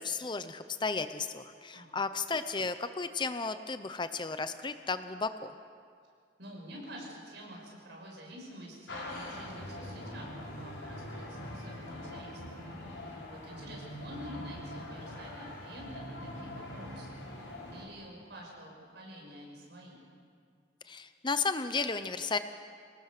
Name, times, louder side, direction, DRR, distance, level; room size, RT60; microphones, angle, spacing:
voice 1, 0.0-5.5 20.9-22.4, left 4 dB, 25° left, 11 dB, 0.6 m, -34 dB
voice 2, 1.7-2.1 6.4-12.6 12.9-20.0, equal, 65° right, -1 dB, 6.3 m, -48 dB
sound 1, 8.9-17.8, left 1 dB, 80° left, 4.6 m, -43 dB
24.5 x 19.0 x 6.6 m, 2.1 s
head